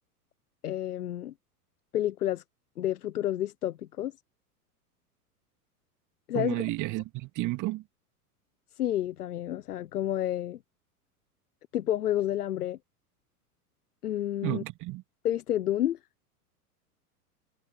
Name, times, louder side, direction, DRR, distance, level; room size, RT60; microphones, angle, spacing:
voice 1, 0.6-1.3 1.9-2.4 2.8-4.1 6.3-6.6 8.7-10.6 11.7-12.8 14.0-14.6 15.2-16.0, left 12 dB, 70° left, 1.2 m, -30 dB
voice 2, 6.3-7.8 14.4-15.0, right 19 dB, 40° right, 2.9 m, -32 dB
hypercardioid pair, 100°, 46 cm